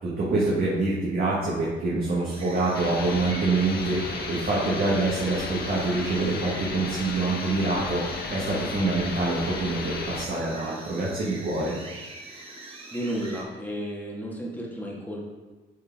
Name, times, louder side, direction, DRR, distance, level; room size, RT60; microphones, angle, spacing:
voice 1, 0.0-11.8, right 2 dB, 50° right, -7 dB, 1.7 m, -26 dB
sound 1, 2.3-13.4, right 2 dB, 25° right, 1.4 m, -44 dB
sound 2, 2.7-10.3, left 4 dB, 55° left, 0.8 m, -34 dB
voice 2, 12.9-15.3, right 1 dB, 10° left, -3 dB, 1.7 m, -33 dB
8.6 x 3.8 x 3.6 m, 1.3 s
cardioid pair, 90°, 20 cm